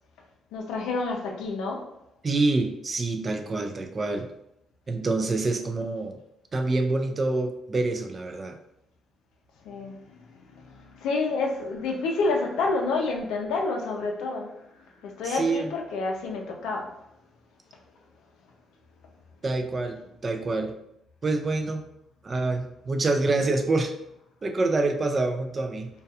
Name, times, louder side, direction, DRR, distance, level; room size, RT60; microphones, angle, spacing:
voice 1, 0.5-1.9 9.6-14.6 15.0-17.0, left 3 dB, 90° left, 1 dB, 0.4 m, -29 dB
voice 2, 2.2-4.3 4.9-6.2 6.5-8.6 15.3-15.7 19.4-20.0 20.2-20.7 21.2-21.8 22.2-23.9 24.4-25.9, right 3 dB, 35° right, 5 dB, 0.3 m, -26 dB
2.3 x 2.2 x 2.6 m, 0.79 s
cardioid pair, 90°, 0 cm